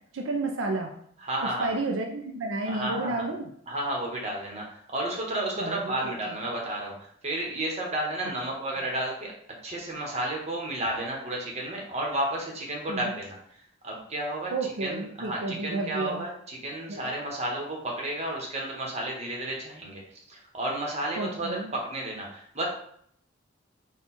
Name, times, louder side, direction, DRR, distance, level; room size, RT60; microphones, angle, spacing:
voice 1, 0.1-0.9 1.6-3.5 5.6-6.1 12.9-13.1 14.5-16.2 16.9-17.1 21.2-21.7, right 2 dB, 75° right, 2 dB, 0.5 m, -31 dB
voice 2, 1.2-1.7 2.7-3.2 3.7-9.3 9.6-13.4 13.8-22.6, right 1 dB, 35° right, -1 dB, 1.0 m, -32 dB
4.4 x 2.3 x 4.1 m, 0.65 s
head